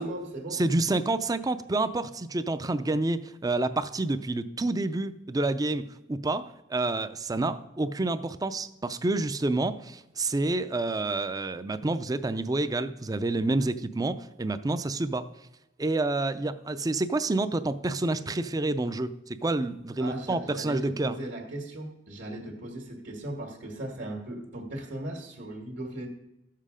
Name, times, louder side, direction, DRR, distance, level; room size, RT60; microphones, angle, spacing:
voice 1, 0.0-0.6 20.0-26.1, right 1 dB, 75° right, -2 dB, 1.8 m, -37 dB
voice 2, 0.5-15.3 15.8-21.1, right 2 dB, 20° right, 12 dB, 0.4 m, -28 dB
12.5 x 7.6 x 5.0 m, 0.92 s
head